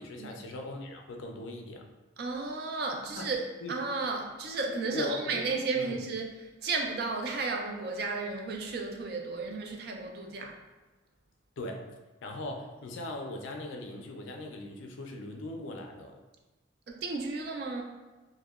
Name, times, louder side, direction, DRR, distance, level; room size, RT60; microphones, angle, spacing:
voice 1, 0.0-1.8 3.1-3.3 3.6-3.8 4.9-5.4 5.7-6.0 11.6-11.8 12.2-16.2, left 1 dB, 75° left, 3 dB, 0.4 m, -39 dB
voice 2, 2.2-10.6 16.9-17.8, right 3 dB, 55° right, 2 dB, 0.3 m, -33 dB
2.7 x 2.1 x 2.3 m, 1.2 s
head